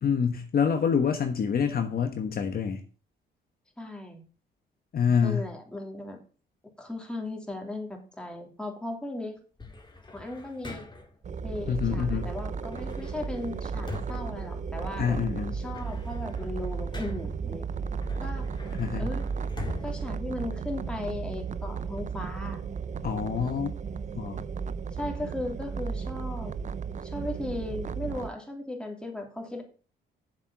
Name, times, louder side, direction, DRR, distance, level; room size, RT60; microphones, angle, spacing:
voice 1, 0.0-2.8 4.9-5.5 11.7-12.3 15.0-15.6 18.8-19.1 23.0-23.7 24.1-24.4, left 7 dB, 50° left, 6 dB, 1.3 m, -26 dB
voice 2, 3.8-4.2 5.2-6.2 6.8-9.4 10.1-10.9 11.4-15.2 15.5-17.7 18.2-18.5 19.0-19.3 19.8-22.6 24.9-26.5 27.0-29.6, left 1 dB, 5° left, 2 dB, 3.1 m, -37 dB
sound 1, 9.6-11.2 12.7-15.1 15.5-17.4 18.0-21.0, left 2 dB, 20° left, 2.3 m, -43 dB
sound 2, 11.2-28.3, right 5 dB, 40° right, 0.6 m, -34 dB
7.6 x 7.4 x 7.3 m, 0.40 s
cardioid pair, 90°, 20 cm